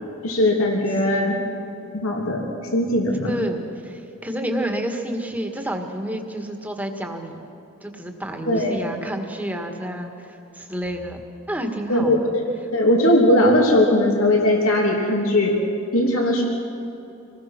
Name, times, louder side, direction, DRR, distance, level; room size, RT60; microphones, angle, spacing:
voice 1, 0.2-1.4 1.9-3.3 8.5-8.8 11.9-12.4 12.7-15.6 15.9-16.4, left 1 dB, 90° left, 0 dB, 3.0 m, -19 dB
voice 2, 1.0-1.4 3.3-7.4 7.8-11.2 11.5-12.3, right 1 dB, 10° right, 4 dB, 1.8 m, -29 dB
26.5 x 19.5 x 6.1 m, 3.0 s
head